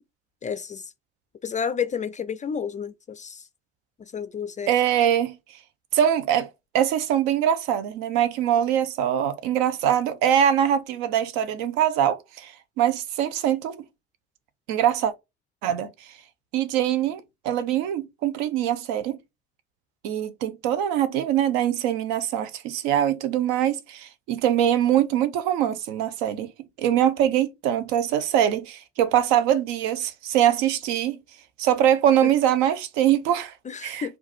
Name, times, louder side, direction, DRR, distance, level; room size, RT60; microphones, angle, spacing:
voice 1, 0.4-0.8 1.4-3.4 4.1-4.7 32.2-32.3 33.7-34.1, left 7 dB, 20° left, 0.4 m, -30 dB
voice 2, 4.7-5.4 5.9-6.5 6.7-13.8 14.7-15.1 15.6-15.9 16.5-19.2 20.0-26.5 26.8-31.2 31.6-33.5 33.8-34.2, right 10 dB, 60° right, 0.8 m, -23 dB
4.7 x 2.6 x 4.2 m
figure-of-eight pair, 55°, 34 cm